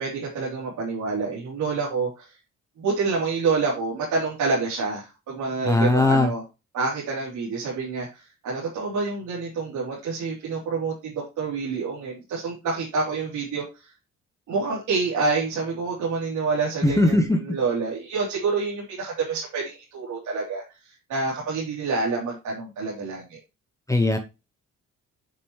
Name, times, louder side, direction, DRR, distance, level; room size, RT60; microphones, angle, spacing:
voice 1, 0.0-2.4 2.8-6.4 6.7-13.9 14.5-23.4, right 4 dB, 80° right, -6 dB, 3.5 m, -28 dB
voice 2, 5.6-6.3 16.8-17.4 23.9-24.2, left 2 dB, 10° left, 6 dB, 0.9 m, -19 dB
8.2 x 6.7 x 3.2 m, 0.27 s
cardioid pair, 90°, 30 cm